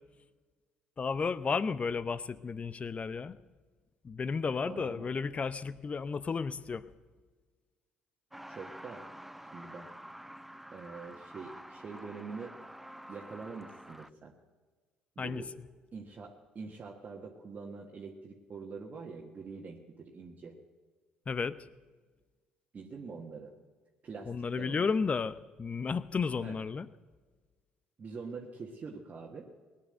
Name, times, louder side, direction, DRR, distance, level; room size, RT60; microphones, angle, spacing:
voice 1, 1.0-3.4 4.0-6.9 15.2-15.4 21.3-21.7 24.3-26.9, left 5 dB, 35° left, 16 dB, 0.7 m, -33 dB
voice 2, 4.6-5.0 8.5-9.1 9.5-9.9 10.7-12.6 13.1-14.3 15.1-15.5 15.9-20.6 22.7-23.5 24.0-24.9 26.4-26.5 28.0-29.5, right 4 dB, 40° right, -1 dB, 1.6 m, -44 dB
Truck, 8.3-14.1, right 1 dB, 5° right, 0.5 m, -48 dB
18.0 x 9.7 x 7.9 m, 1.4 s
hypercardioid pair, 60°, 4 cm